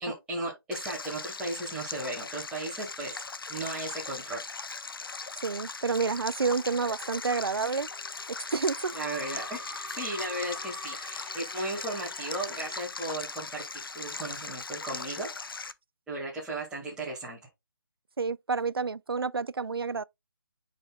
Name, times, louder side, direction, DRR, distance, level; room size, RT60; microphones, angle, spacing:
voice 1, 0.0-3.2 3.5-4.5 8.9-15.3 16.1-17.4, right 2 dB, 5° right, 1.8 m, -36 dB
Stream, 0.7-15.7, left 4 dB, 70° left, 0.7 m, -39 dB
voice 2, 5.4-7.9 8.5-8.9 18.2-20.0, right 4 dB, 85° right, 0.4 m, -29 dB
sound 1, 6.4-12.8, left 2 dB, 25° left, 2.8 m, -46 dB
9.9 x 4.1 x 2.3 m
figure-of-eight pair, 150°, 12 cm